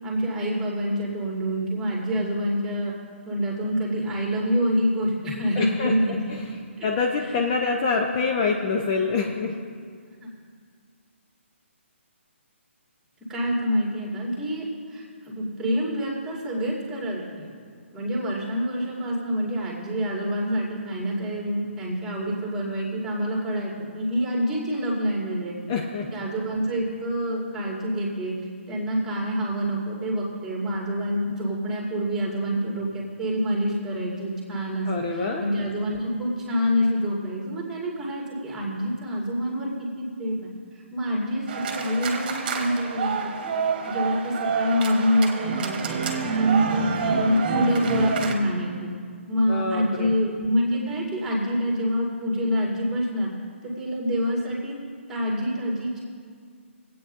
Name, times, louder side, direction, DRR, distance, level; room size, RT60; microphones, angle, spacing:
voice 1, 0.0-2.9 3.3-6.4 6.8-6.9 7.2-7.4 10.2-10.3 13.3-17.5 17.9-25.5 26.1-28.3 28.7-39.7 40.0-43.3 43.8-46.0 46.4-48.9 49.3-53.3 53.6-54.8 55.1-56.0, equal, 5° right, -4 dB, 2.1 m, -26 dB
voice 2, 5.5-6.6 6.8-9.5 25.7-26.2 34.9-35.4 49.5-50.1, left 4 dB, 30° left, 1 dB, 0.7 m, -26 dB
sound 1, 41.5-48.3, right 5 dB, 40° right, 1.3 m, -27 dB
24.5 x 8.5 x 2.6 m, 2.1 s
hypercardioid pair, 150°, 7 cm